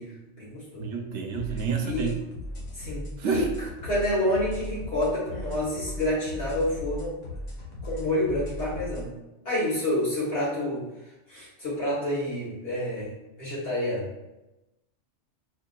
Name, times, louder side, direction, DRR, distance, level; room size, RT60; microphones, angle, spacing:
voice 1, 0.0-0.9 1.8-2.2 2.7-3.5 3.8-7.1 7.8-9.1 9.4-10.8 11.3-13.1 13.4-14.0, left 1 dB, 55° left, -8 dB, 1.6 m, -28 dB
voice 2, 0.8-2.2 3.2-3.5, right 6 dB, 75° right, 4 dB, 0.9 m, -29 dB
sound 1, 1.3-9.1, left 1 dB, 85° left, 1.3 m, -37 dB
6.8 x 2.3 x 2.2 m, 0.99 s
omnidirectional pair, 1.2 m